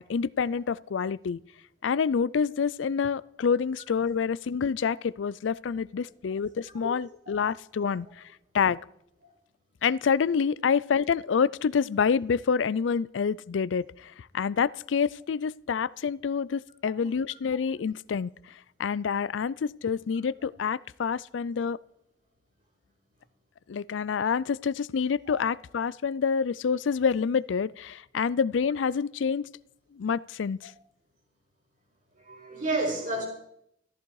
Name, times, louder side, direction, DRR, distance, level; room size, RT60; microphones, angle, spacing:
voice 1, 0.0-1.4 1.8-8.1 8.5-8.8 9.8-18.3 18.8-21.8 23.7-29.5 29.9-30.7, left 6 dB, 85° left, 21 dB, 0.4 m, -27 dB
voice 2, 32.2-33.2, right 2 dB, 45° right, 0 dB, 5.2 m, -31 dB
14.5 x 13.5 x 4.7 m, 0.75 s
head